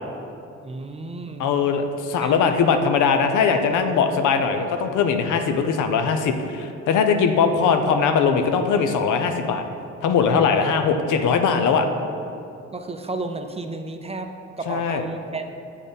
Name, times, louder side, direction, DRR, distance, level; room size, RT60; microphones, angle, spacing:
voice 1, 0.6-1.6 2.2-2.3 10.6-10.8 12.7-15.5, right 3 dB, 20° right, 6 dB, 0.4 m, -33 dB
voice 2, 1.4-9.6 10.0-11.9 14.7-15.0, left 6 dB, 80° left, 7 dB, 0.6 m, -20 dB
7.3 x 4.2 x 5.2 m, 2.6 s
cardioid pair, 90°, 30 cm